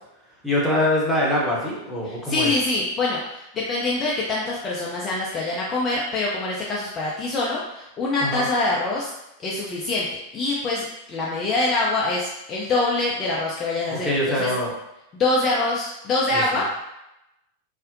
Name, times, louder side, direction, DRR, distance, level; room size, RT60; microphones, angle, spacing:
voice 1, 0.4-2.5 8.2-8.5 13.9-14.7, left 1 dB, ahead, -6 dB, 0.8 m, -23 dB
voice 2, 2.0-9.1 9.4-10.1 10.3-14.5 15.1-16.9, left 2 dB, 25° left, -5 dB, 0.4 m, -25 dB
2.5 x 2.0 x 2.5 m, 0.88 s
figure-of-eight pair, 90°, 0 cm